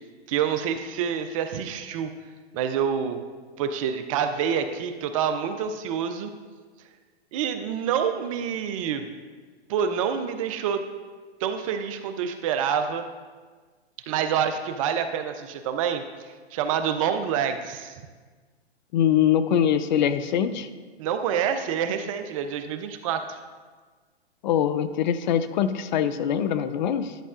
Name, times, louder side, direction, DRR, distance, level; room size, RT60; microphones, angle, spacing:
voice 1, 0.3-2.1 2.5-3.2 3.6-6.3 7.3-9.1 9.7-10.8 11.4-13.1 14.1-16.0 16.5-18.0 21.0-23.4, right 8 dB, 35° right, 8 dB, 0.4 m, -27 dB
voice 2, 18.9-20.7 24.4-27.2, left 9 dB, 45° left, 12 dB, 0.4 m, -23 dB
11.0 x 6.2 x 2.5 m, 1.4 s
hypercardioid pair, 125°, 32 cm